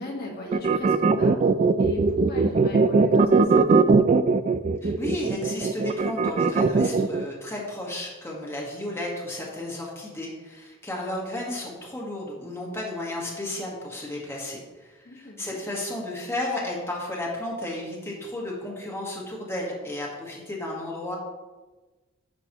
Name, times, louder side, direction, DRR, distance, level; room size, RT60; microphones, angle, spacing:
voice 1, 0.0-1.4 1.8-4.0 15.0-15.6, left 1 dB, 50° left, -2 dB, 1.5 m, -37 dB
sound 1, 0.5-7.3, right 4 dB, 35° right, 0.3 m, -20 dB
voice 2, 4.8-21.2, left 1 dB, 10° left, -4 dB, 1.4 m, -33 dB
10.0 x 6.1 x 2.9 m, 1.2 s
head